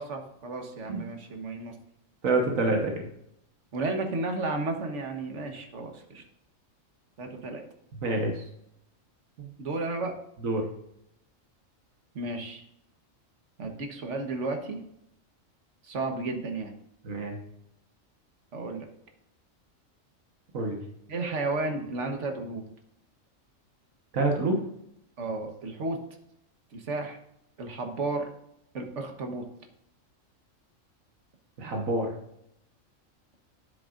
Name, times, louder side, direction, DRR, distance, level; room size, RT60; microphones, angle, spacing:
voice 1, 0.0-1.7 3.7-6.2 7.2-7.6 9.6-10.2 12.1-12.7 13.6-14.8 15.8-16.7 18.5-18.9 21.1-22.6 25.2-26.0 26.7-27.2 27.6-28.3 28.7-29.4, right 3 dB, 65° right, 4 dB, 1.5 m, -33 dB
voice 2, 2.2-3.0 8.0-8.4 9.4-9.5 10.4-10.7 17.0-17.3 20.5-20.8 24.1-24.6 31.6-32.1, right 2 dB, 90° right, 2 dB, 1.6 m, -27 dB
10.0 x 7.8 x 2.5 m, 0.77 s
omnidirectional pair, 1.4 m